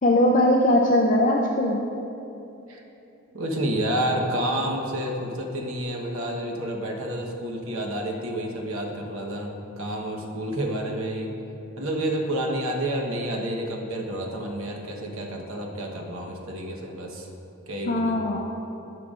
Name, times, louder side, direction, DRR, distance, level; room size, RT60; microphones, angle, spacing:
voice 1, 0.0-1.8 17.9-18.4, left 1 dB, 35° left, -1 dB, 0.4 m, -20 dB
voice 2, 3.3-11.3 11.8-17.3 17.7-18.2, right 1 dB, 70° right, 1 dB, 1.1 m, -29 dB
15.5 x 5.8 x 2.5 m, 2.9 s
head